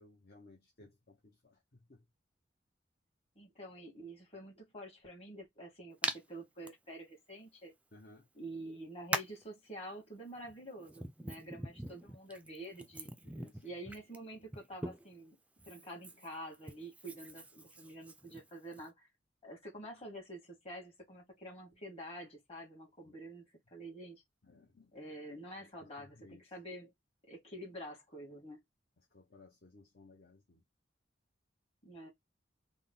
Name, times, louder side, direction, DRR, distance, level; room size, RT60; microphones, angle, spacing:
voice 1, 0.0-2.0 7.9-8.3 13.2-13.6 23.0-23.1 24.4-24.9 25.5-26.4 29.1-30.6, left 2 dB, 55° left, 0.9 m, -59 dB
voice 2, 3.4-7.7 8.3-13.1 13.6-15.4 15.7-19.1 19.4-24.2 24.9-26.9 27.3-28.6 31.8-32.1, right 1 dB, 35° left, 1.9 m, -48 dB
Hands, 6.0-6.2 6.6-6.7 8.0-8.1 9.1-9.4 10.4-15.2 15.6-18.9, right 1 dB, 5° right, 0.4 m, -42 dB
3.6 x 2.2 x 3.8 m
head